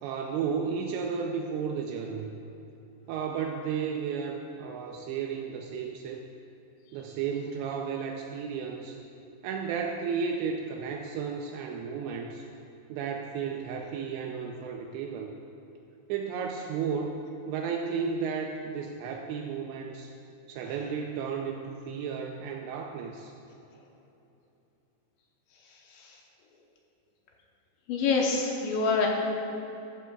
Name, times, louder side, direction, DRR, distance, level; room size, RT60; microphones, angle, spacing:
voice 1, 0.0-2.3 3.1-6.2 6.9-9.0 9.4-12.4 12.9-15.3 16.1-20.1 20.5-23.3, right 6 dB, 90° right, 1 dB, 2.5 m, -33 dB
voice 2, 27.9-29.1, left 4 dB, 75° left, -1 dB, 2.9 m, -25 dB
13.5 x 12.5 x 2.3 m, 3.0 s
omnidirectional pair, 5.7 m